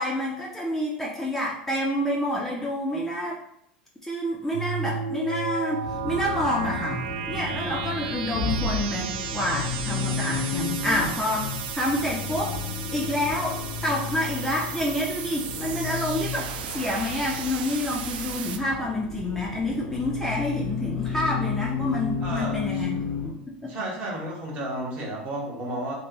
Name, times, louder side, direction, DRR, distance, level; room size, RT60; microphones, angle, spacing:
voice 1, 0.0-3.4 4.0-12.6 12.9-22.9 23.2-23.4 23.6-23.7, left 1 dB, 5° left, -4 dB, 0.5 m, -28 dB
sound 1, 4.5-18.6, right 7 dB, 75° right, 0.3 m, -34 dB
Accelerating revving vroom, 5.8-23.3, left 6 dB, 75° left, 0.6 m, -33 dB
voice 2, 22.2-22.7 23.7-26.0, right 1 dB, 35° right, -2 dB, 1.2 m, -32 dB
3.1 x 2.1 x 2.9 m, 0.75 s
hypercardioid pair, 90°, 5 cm